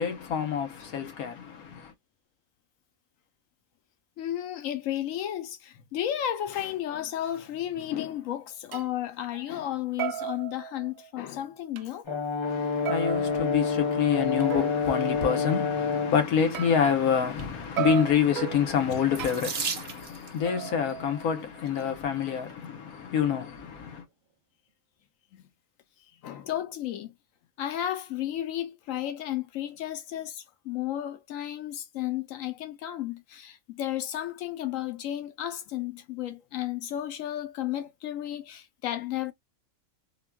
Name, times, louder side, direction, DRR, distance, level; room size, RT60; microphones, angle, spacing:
voice 1, 0.0-1.9 12.4-24.0, left 7 dB, 85° left, 1.3 m, -27 dB
voice 2, 4.2-12.1 25.3-25.4 26.2-27.1 27.6-39.3, left 12 dB, 70° left, 0.9 m, -33 dB
sound 1, 8.1-8.2 8.7-8.9 9.3-9.7 10.0-11.3 11.8-11.9 12.9-14.9 16.5-17.5 17.8-19.7 20.5-21.6, right 11 dB, 75° right, 1.0 m, -36 dB
Brass instrument, 12.1-16.2, left 5 dB, 40° left, 0.4 m, -28 dB
Water tap faucet / Sink (filling or washing), 19.1-20.4 21.4-21.8 22.5-22.6 22.9-23.1, right 6 dB, 50° right, 0.8 m, -35 dB
3.6 x 2.2 x 2.2 m
omnidirectional pair, 1.5 m